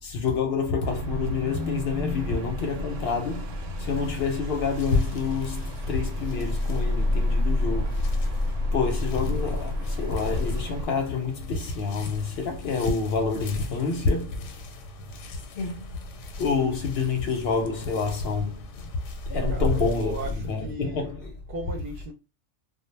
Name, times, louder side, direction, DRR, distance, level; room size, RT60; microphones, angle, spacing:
voice 1, 0.0-8.1 8.7-14.6 15.6-15.9 16.4-18.9 19.3-21.2, left 5 dB, 65° left, 0.7 m, -28 dB
sound 1, 0.8-10.9, left 1 dB, 80° right, 0.9 m, -29 dB
sound 2, 3.9-20.6, left 2 dB, 85° left, 0.9 m, -34 dB
voice 2, 19.5-22.1, right 2 dB, 55° right, 0.7 m, -37 dB
2.1 x 2.0 x 3.1 m
omnidirectional pair, 1.2 m